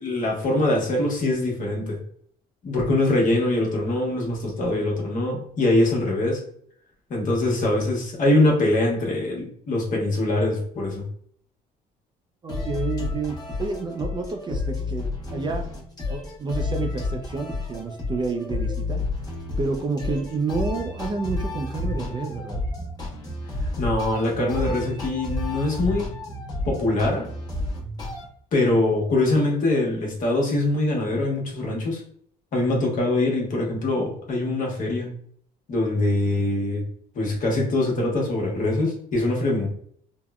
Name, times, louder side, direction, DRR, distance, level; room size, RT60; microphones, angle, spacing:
voice 1, 0.0-2.0 2.6-6.4 7.1-11.0 23.8-26.1 26.6-27.2 28.5-32.0 32.5-35.2 35.7-36.8 37.1-39.7, left 2 dB, 50° left, -1 dB, 1.1 m, -23 dB
voice 2, 12.4-15.7 16.1-19.0 19.6-22.6, right 4 dB, 25° right, 4 dB, 0.4 m, -29 dB
sound 1, 12.5-28.2, left 2 dB, 25° left, 1.0 m, -31 dB
3.4 x 2.1 x 2.3 m, 0.62 s
cardioid pair, 110°, 17 cm